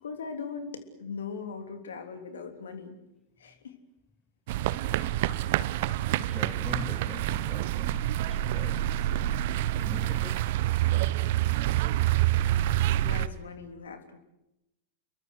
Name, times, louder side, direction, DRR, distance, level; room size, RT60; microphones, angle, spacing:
voice 1, 0.0-3.0 3.4-3.7 12.7-14.2, left 5 dB, 65° left, 3.4 m, -40 dB
sound 1, 4.5-13.3, right 14 dB, 50° right, 1.0 m, -27 dB
voice 2, 6.3-8.9 9.8-10.6 11.0-11.4, left 4 dB, 10° left, 0.9 m, -43 dB
29.5 x 23.0 x 6.6 m
figure-of-eight pair, 90°, 0 cm